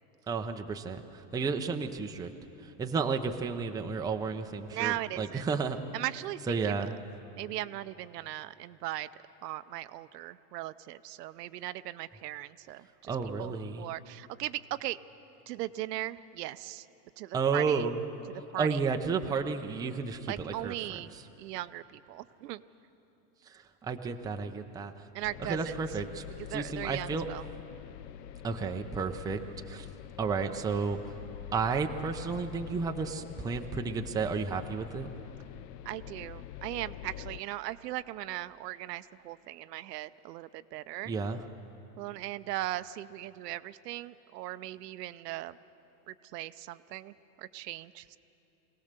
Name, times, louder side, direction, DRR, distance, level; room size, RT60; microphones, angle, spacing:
voice 1, 0.3-2.3 2.6-5.8 6.5-6.9 13.1-13.9 17.3-18.0 18.6-20.8 23.4-25.1 25.5-26.2 26.5-27.3 28.4-29.4 29.7-29.9 30.2-31.0 31.5-35.1 41.0-41.4, right 5 dB, 10° right, 5 dB, 0.5 m, -32 dB
voice 2, 4.7-5.5 5.9-6.8 7.4-9.1 9.4-15.0 15.5-16.9 17.2-17.8 18.3-18.8 20.3-22.6 25.1-25.8 26.5-27.5 35.8-41.1 42.0-45.6 46.1-48.2, right 15 dB, 85° right, 14 dB, 0.7 m, -38 dB
sound 1, 25.2-37.4, left 11 dB, 70° left, 0.8 m, -45 dB
23.5 x 18.0 x 6.7 m, 2.9 s
supercardioid pair, 135°, 47 cm